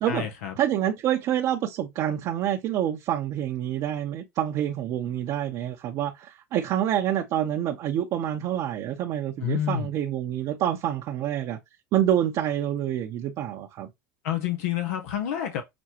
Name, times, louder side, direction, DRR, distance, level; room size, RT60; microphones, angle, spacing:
voice 1, 0.1-0.5 9.4-9.9 14.2-15.6, left 10 dB, 80° left, 0.7 m, -28 dB
voice 2, 0.6-11.6 11.9-13.9, right 11 dB, 50° right, 0.7 m, -27 dB
6.1 x 2.2 x 2.9 m
supercardioid pair, 100°, 8 cm